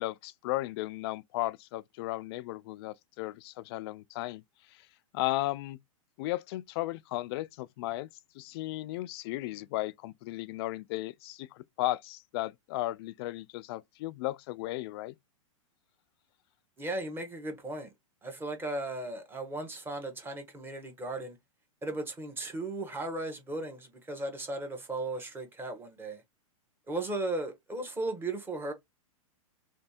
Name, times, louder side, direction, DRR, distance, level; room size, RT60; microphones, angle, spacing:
voice 1, 0.0-4.4 5.1-5.8 6.2-8.1 8.4-15.1, left 17 dB, 45° left, 0.4 m, -35 dB
voice 2, 16.8-17.9 18.2-21.4 21.8-26.2 26.9-28.7, right 2 dB, 10° right, 1.3 m, -36 dB
3.3 x 3.3 x 4.3 m
hypercardioid pair, 135°, 18 cm